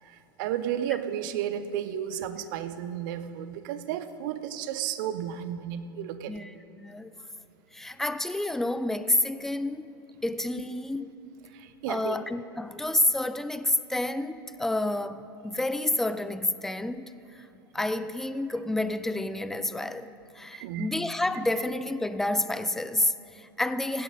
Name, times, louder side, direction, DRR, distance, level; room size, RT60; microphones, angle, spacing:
voice 1, 0.0-6.3 11.5-12.2 20.5-20.9, right 10 dB, 55° right, 0.6 m, -33 dB
voice 2, 6.3-7.1 7.7-9.9 10.2-11.1 11.9-17.5 17.7-24.0, left 1 dB, 5° left, 0.3 m, -29 dB
16.5 x 9.3 x 4.0 m
figure-of-eight pair, 90°, 13 cm